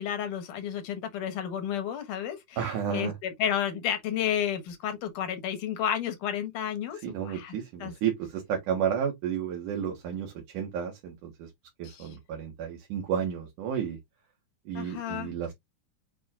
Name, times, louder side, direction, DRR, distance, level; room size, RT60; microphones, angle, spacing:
voice 1, 0.0-7.0 7.2-7.9 11.8-12.1 14.7-15.3, left 9 dB, 85° left, 3.1 m, -32 dB
voice 2, 2.6-3.1 7.0-11.5 11.8-14.0 14.7-15.5, right 8 dB, 85° right, 3.1 m, -32 dB
7.8 x 4.9 x 2.5 m
omnidirectional pair, 3.5 m